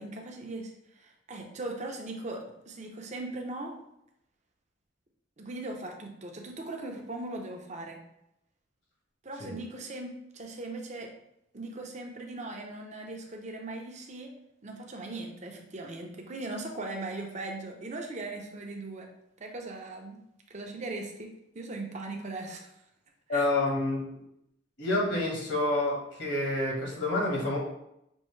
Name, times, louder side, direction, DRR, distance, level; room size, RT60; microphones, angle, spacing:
voice 1, 0.0-3.8 5.4-8.0 9.2-11.1 11.5-14.3 14.6-19.1 19.4-20.2 20.5-22.7 23.3-23.5, right 2 dB, 40° right, 2 dB, 0.6 m, -39 dB
voice 2, 23.3-24.0 24.8-27.6, left 2 dB, 70° left, -2 dB, 1.3 m, -28 dB
5.4 x 2.7 x 3.1 m, 0.81 s
head